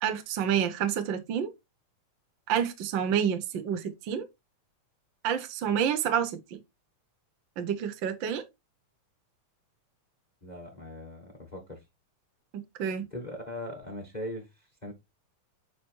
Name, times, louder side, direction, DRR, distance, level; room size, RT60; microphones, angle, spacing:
voice 1, 0.0-1.5 2.5-4.3 5.2-6.6 7.6-8.4 12.8-13.1, right 8 dB, 60° right, 1.2 m, -28 dB
voice 2, 10.4-11.8 13.1-14.5 14.8-14.9, left 1 dB, 40° left, 0.6 m, -39 dB
9.1 x 3.2 x 4.5 m
omnidirectional pair, 3.5 m